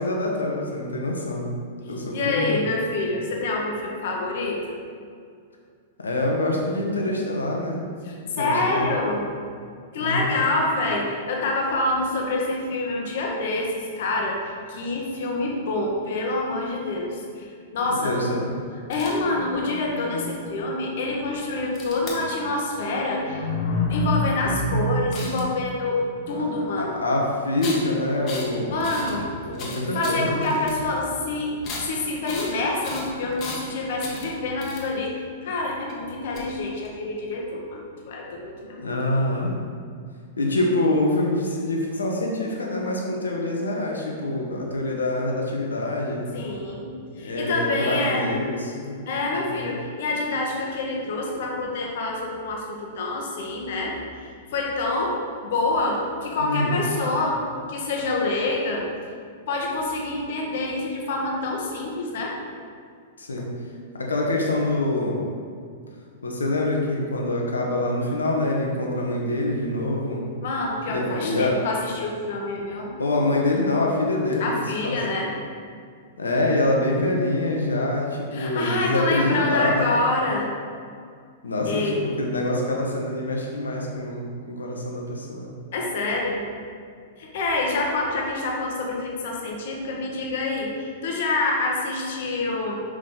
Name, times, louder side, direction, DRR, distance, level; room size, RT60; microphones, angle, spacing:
voice 1, 0.0-1.5 1.8-2.6 6.0-7.8 8.4-8.9 10.0-10.3 17.9-18.5 26.3-26.4 26.8-28.8 29.4-30.4 38.6-39.5 40.4-46.2 47.2-49.0 49.4-49.7 56.4-56.8 63.2-63.5 63.9-65.2 66.2-70.2 70.9-71.6 71.8-72.0 73.0-74.6 74.8-75.0 76.2-79.9 81.4-85.5, left 1 dB, 75° left, -1 dB, 1.1 m, -25 dB
voice 2, 2.1-4.8 8.0-9.3 9.9-18.1 18.9-26.0 26.3-27.0 28.7-29.3 29.9-39.3 46.3-46.9 47.2-48.2 49.1-54.0 54.5-57.4 57.7-58.8 59.5-62.3 63.4-63.5 70.4-73.0 74.4-75.3 78.3-80.5 81.6-82.0 85.7-86.4 87.2-92.7, left 2 dB, 55° left, -1 dB, 1.2 m, -26 dB
sound 1, 18.9-19.2 21.7-22.1 25.1-25.6 27.6-27.8 28.3-28.5 28.8-29.1 29.5-30.7 31.6-31.9 32.3-32.5 32.8-33.7 34.0-35.1 35.9-36.0 36.2-36.9, left 3 dB, 35° left, 1.3 m, -36 dB
6.3 x 4.9 x 3.9 m, 2.2 s
figure-of-eight pair, 100°, 0 cm